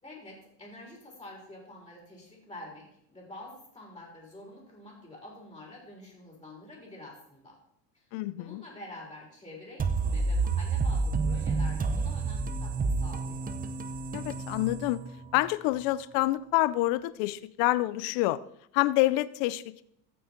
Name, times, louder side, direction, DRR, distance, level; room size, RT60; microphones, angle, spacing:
voice 1, 0.0-7.6 7.9-8.1 8.4-13.5, left 1 dB, 10° left, -2 dB, 4.0 m, -47 dB
voice 2, 8.1-8.6 14.1-15.0 15.3-18.4 18.7-19.8, left 17 dB, 65° left, 17 dB, 0.7 m, -27 dB
sound 1, 9.8-15.4, right 4 dB, 15° right, 0.8 m, -30 dB
15.0 x 6.3 x 4.4 m, 0.73 s
supercardioid pair, 120°, 49 cm